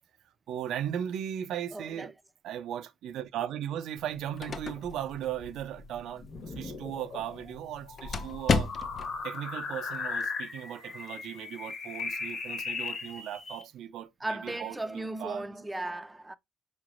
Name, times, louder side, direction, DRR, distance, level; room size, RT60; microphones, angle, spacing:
voice 1, 0.5-2.1 2.4-8.7 9.2-15.4, right 10 dB, 80° right, 0.4 m, -37 dB
voice 2, 1.7-2.1 14.2-16.4, right 2 dB, 15° right, 0.5 m, -36 dB
sound 1, 4.0-9.2, left 4 dB, 50° left, 0.5 m, -35 dB
sound 2, 6.2-13.6, left 4 dB, 65° left, 1.3 m, -38 dB
4.9 x 3.2 x 2.4 m
cardioid pair, 90°, 0 cm